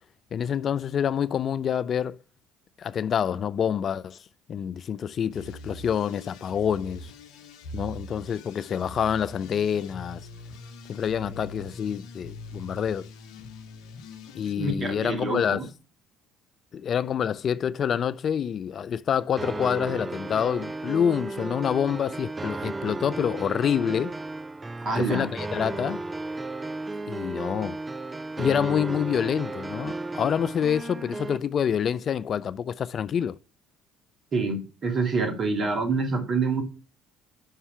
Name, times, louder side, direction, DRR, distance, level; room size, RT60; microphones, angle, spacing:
voice 1, 0.3-2.2 2.8-7.1 7.7-10.3 10.9-13.1 14.3-15.6 16.7-24.1 25.0-26.0 27.1-27.8 28.4-33.4, left 8 dB, 50° left, 0.3 m, -27 dB
sound 1, 5.3-14.5, left 2 dB, 70° left, 0.8 m, -43 dB
voice 2, 14.6-15.7 24.8-25.3 34.3-36.6, right 3 dB, 45° right, 2.5 m, -26 dB
sound 2, 19.4-31.4, right 2 dB, 20° right, 0.4 m, -34 dB
5.6 x 5.5 x 5.7 m
hypercardioid pair, 60°, 0 cm